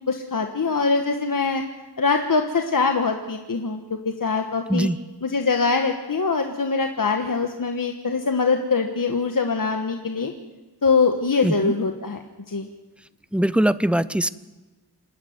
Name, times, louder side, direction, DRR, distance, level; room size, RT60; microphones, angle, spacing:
voice 1, 0.1-1.6 2.0-4.9 5.2-10.3 10.8-12.2 12.5-12.7, left 4 dB, 55° left, 4 dB, 1.5 m, -23 dB
voice 2, 11.4-11.7 13.3-14.3, right 1 dB, 5° right, 15 dB, 0.7 m, -21 dB
27.5 x 11.0 x 9.5 m, 1.1 s
wide cardioid pair, 70°, 39 cm